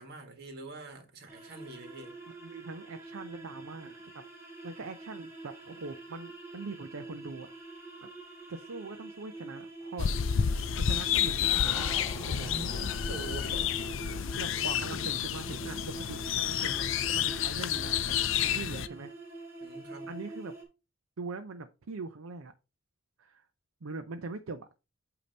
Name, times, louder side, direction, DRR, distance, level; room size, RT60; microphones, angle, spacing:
voice 1, 0.0-2.2 12.4-13.8 19.6-20.1, right 2 dB, 50° right, 1.7 m, -44 dB
sound 1, 1.3-20.6, right 2 dB, 15° right, 2.2 m, -45 dB
voice 2, 2.3-4.2 4.6-7.5 8.0-8.1 8.5-10.1 10.4-12.0 12.3-12.9 14.3-19.1 20.1-20.5 21.2-22.5 23.2-23.5 23.8-24.8, right 3 dB, 75° right, 0.6 m, -42 dB
sound 2, 10.0-18.9, left 9 dB, 60° left, 0.5 m, -30 dB
sound 3, 11.1-15.7, left 1 dB, 15° left, 1.3 m, -49 dB
8.4 x 2.9 x 5.2 m
head